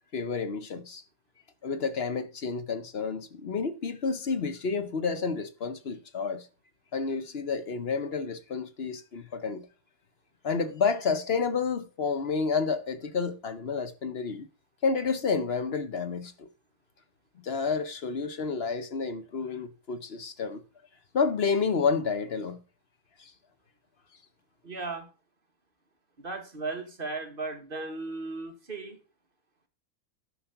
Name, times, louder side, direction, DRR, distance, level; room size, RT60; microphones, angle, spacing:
voice 1, 0.1-1.0 1.6-6.5 6.9-9.7 10.4-14.5 14.8-16.5 17.4-20.6 21.1-22.6 23.2-23.3, left 5 dB, 50° left, 1.0 m, -30 dB
voice 2, 24.6-25.1 26.2-29.0, right 3 dB, 35° right, 1.8 m, -36 dB
11.5 x 5.2 x 5.7 m
omnidirectional pair, 1.6 m